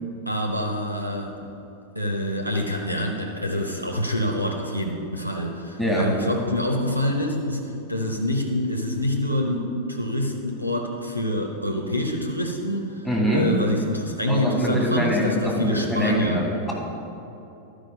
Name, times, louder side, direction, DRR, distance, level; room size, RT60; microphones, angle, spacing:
voice 1, 0.3-1.3 1.9-16.4, left 1 dB, 90° right, 2 dB, 0.7 m, -26 dB
voice 2, 5.8-6.1 13.0-13.5 14.3-16.7, equal, 5° left, -3 dB, 2.0 m, -23 dB
12.0 x 5.0 x 5.2 m, 3.0 s
figure-of-eight pair, 90°, 0 cm